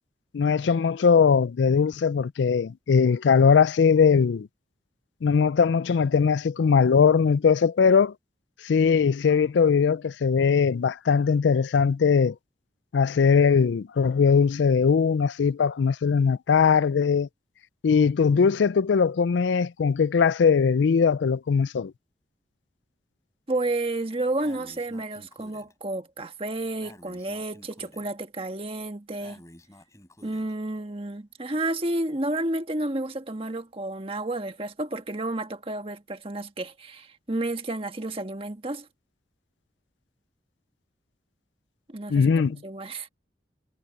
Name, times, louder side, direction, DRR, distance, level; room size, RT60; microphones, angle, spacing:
voice 1, 0.3-4.5 5.2-8.1 8.6-12.3 12.9-17.3 17.8-21.9 42.1-42.6, left 6 dB, 90° left, 0.4 m, -20 dB
voice 2, 23.5-29.4 30.2-38.9 41.9-42.3 42.6-43.1, right 2 dB, 30° right, 1.5 m, -31 dB
Breathing, 24.4-25.7 26.8-28.1 29.2-30.5, left 1 dB, 20° left, 3.6 m, -51 dB
head